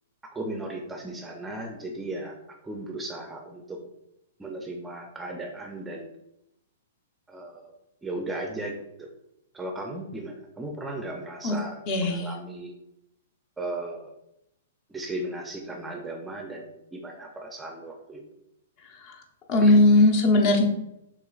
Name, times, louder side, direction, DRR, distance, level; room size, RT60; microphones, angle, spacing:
voice 1, 0.2-2.4 2.6-3.8 4.4-6.1 7.3-7.7 8.0-9.1 9.5-12.7 13.6-14.1 14.9-18.2, right 1 dB, 10° right, 2 dB, 0.5 m, -36 dB
voice 2, 11.9-12.3 18.8-19.2 19.5-20.6, left 2 dB, 40° left, 2 dB, 0.9 m, -19 dB
6.7 x 2.4 x 2.4 m, 0.84 s
hypercardioid pair, 120°, 0 cm